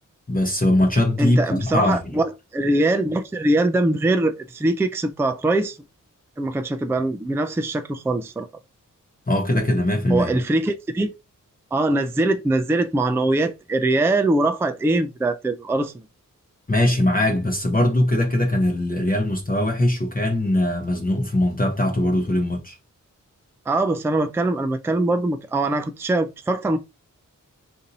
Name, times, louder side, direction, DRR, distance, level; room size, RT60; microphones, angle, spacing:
voice 1, 0.3-2.2 9.3-10.4 16.7-22.8, left 1 dB, 25° left, 0.9 m, -21 dB
voice 2, 1.2-5.8 6.4-8.5 10.1-11.1 11.7-15.9 23.7-26.8, right 2 dB, 10° right, 0.3 m, -22 dB
2.7 x 2.6 x 3.9 m
wide cardioid pair, 70°, 33 cm